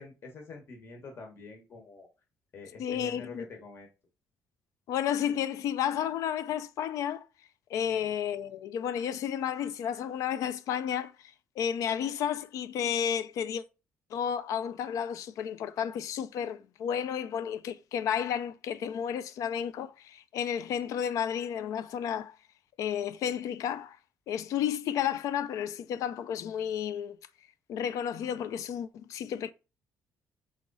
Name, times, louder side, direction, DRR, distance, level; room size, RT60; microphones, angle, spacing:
voice 1, 0.0-2.1 2.5-3.9, left 3 dB, 45° left, 1.2 m, -46 dB
voice 2, 2.8-3.5 4.9-7.3 7.7-13.6 14.1-22.4 22.8-24.0 24.3-27.2 27.7-29.5, left 9 dB, 75° left, 0.4 m, -32 dB
3.7 x 3.1 x 4.0 m
cardioid pair, 120°, 6 cm